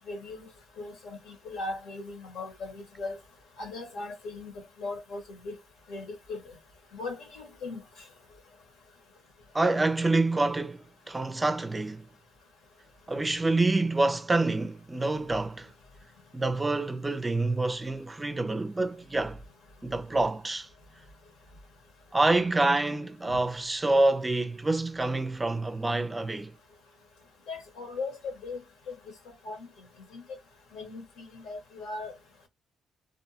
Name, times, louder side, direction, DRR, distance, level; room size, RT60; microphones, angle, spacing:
voice 1, 0.1-0.5 0.8-3.2 3.6-4.5 4.8-5.6 5.9-6.4 6.9-7.8 27.5-28.6 28.9-29.1 29.4-29.6 30.1-30.2 30.7-32.1, left 3 dB, 85° left, 1.2 m, -38 dB
voice 2, 9.5-12.0 13.1-15.7 16.3-19.4 19.8-20.7 22.1-26.5, right 2 dB, 20° right, 0.4 m, -27 dB
2.6 x 2.2 x 2.7 m
cardioid pair, 90°, 0 cm